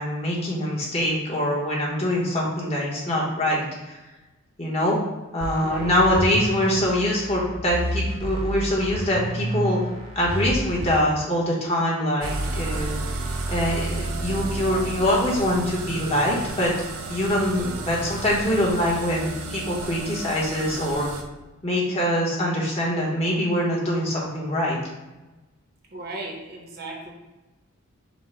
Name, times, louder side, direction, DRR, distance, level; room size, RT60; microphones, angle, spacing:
voice 1, 0.0-4.0 4.6-5.0 5.3-9.8 10.1-13.0 13.5-16.7 17.1-21.1 21.6-24.8, left 1 dB, 30° left, -4 dB, 1.1 m, -24 dB
sound 1, 5.4-11.0, equal, 25° right, 0.5 m, -30 dB
voice 2, 5.6-6.0 25.9-27.1, right 2 dB, 45° right, 0 dB, 0.9 m, -36 dB
sound 2, 12.2-21.2, right 2 dB, 80° right, 0.6 m, -32 dB
5.5 x 2.2 x 4.3 m, 1.1 s
head